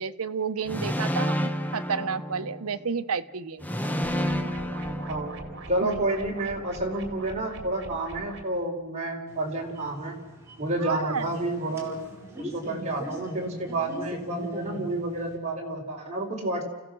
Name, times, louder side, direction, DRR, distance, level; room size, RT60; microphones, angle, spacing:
voice 1, 0.0-3.6 4.4-4.5 5.8-6.0 10.8-11.4, right 6 dB, 80° right, 10 dB, 0.9 m, -31 dB
sound 1, 0.7-2.9 3.6-5.8, equal, 10° left, 0.9 m, -30 dB
sound 2, 4.0-8.4, right 2 dB, 55° right, 3.0 m, -42 dB
voice 2, 5.1-5.4 5.7-10.2 10.6-12.0 12.4-16.6, right 2 dB, 30° right, -1 dB, 4.5 m, -30 dB
sound 3, 9.3-15.4, right 1 dB, 15° right, 4.8 m, -41 dB
29.5 x 16.0 x 6.3 m, 1.0 s
head